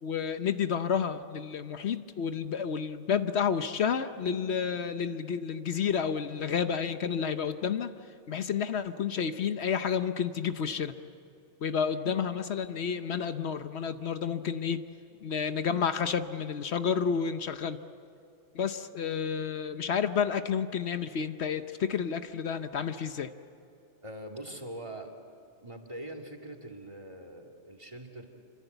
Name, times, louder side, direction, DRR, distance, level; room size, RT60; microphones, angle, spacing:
voice 1, 0.0-7.9 8.3-10.9 11.6-14.8 15.2-17.8 18.5-23.3, left 7 dB, 70° left, 10 dB, 1.1 m, -30 dB
voice 2, 24.0-25.1 25.6-28.3, right 1 dB, 25° right, 5 dB, 2.5 m, -43 dB
26.5 x 25.0 x 8.0 m, 2.5 s
omnidirectional pair, 1.2 m